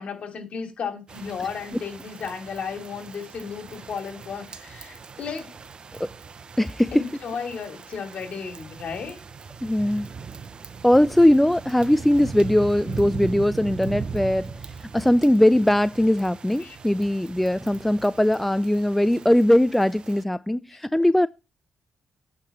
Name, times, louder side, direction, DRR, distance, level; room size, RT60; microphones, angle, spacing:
voice 1, 0.0-5.5 6.9-9.2 16.6-16.8, left 6 dB, 60° left, 2.7 m, -34 dB
sound 1, 1.1-20.2, right 5 dB, 45° right, 0.8 m, -39 dB
voice 2, 6.6-7.0 9.6-10.1 10.8-21.3, left 1 dB, 5° left, 0.4 m, -20 dB
9.0 x 4.9 x 7.1 m
cardioid pair, 80°, 2 cm